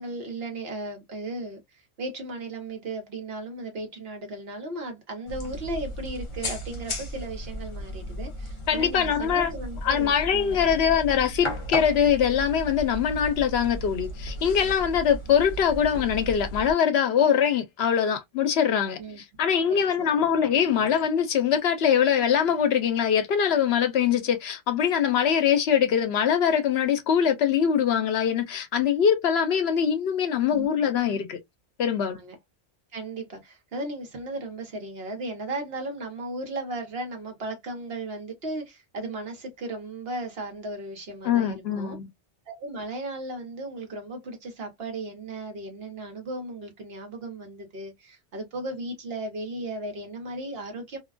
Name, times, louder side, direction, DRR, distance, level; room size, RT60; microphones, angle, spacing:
voice 1, 0.0-10.8 19.0-19.2 19.7-20.3 30.5-30.9 32.1-32.3 32.9-42.0 42.5-51.0, right 2 dB, 65° right, 1.2 m, -36 dB
sound 1, 5.3-16.7, equal, 35° left, 0.6 m, -35 dB
voice 2, 8.7-9.5 9.8-19.0 19.4-31.4 31.8-32.2 41.2-42.1, left 8 dB, 75° left, 0.9 m, -23 dB
2.7 x 2.2 x 2.4 m
omnidirectional pair, 1.1 m